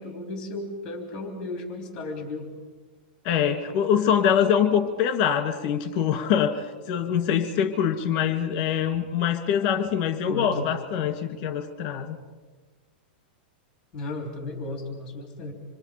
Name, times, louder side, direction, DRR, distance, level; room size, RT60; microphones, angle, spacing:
voice 1, 0.0-2.5 10.3-10.7 13.9-15.5, left 2 dB, 15° left, 3 dB, 3.4 m, -34 dB
voice 2, 3.2-12.2, left 8 dB, 30° left, 8 dB, 2.2 m, -24 dB
26.5 x 23.5 x 5.2 m, 1.3 s
supercardioid pair, 165°, 5 cm